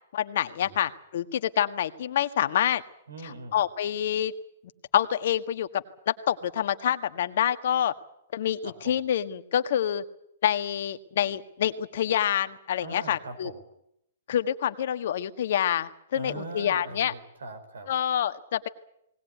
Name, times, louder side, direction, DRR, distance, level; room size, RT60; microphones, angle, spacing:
voice 1, 0.1-2.8 3.5-4.3 4.9-7.9 8.3-10.0 10.4-13.5 14.3-17.1 17.9-18.7, left 10 dB, 60° left, 10 dB, 1.6 m, -27 dB
voice 2, 3.1-3.6 8.6-9.0 12.8-13.6 16.1-17.9, right 3 dB, 90° right, 10 dB, 5.5 m, -41 dB
20.0 x 19.5 x 9.3 m, 0.77 s
hypercardioid pair, 140°, 0 cm